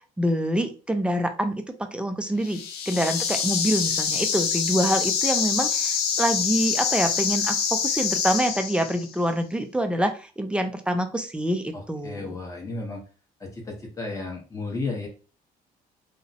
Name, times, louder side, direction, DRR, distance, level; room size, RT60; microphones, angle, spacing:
voice 1, 0.2-12.4, equal, 5° right, 6 dB, 0.4 m, -26 dB
sound 1, 2.4-9.1, left 7 dB, 70° left, 0.5 m, -26 dB
voice 2, 11.7-13.0 13.4-15.1, left 3 dB, 20° left, 0 dB, 0.9 m, -33 dB
2.4 x 2.0 x 2.7 m, 0.34 s
cardioid pair, 110°, 17 cm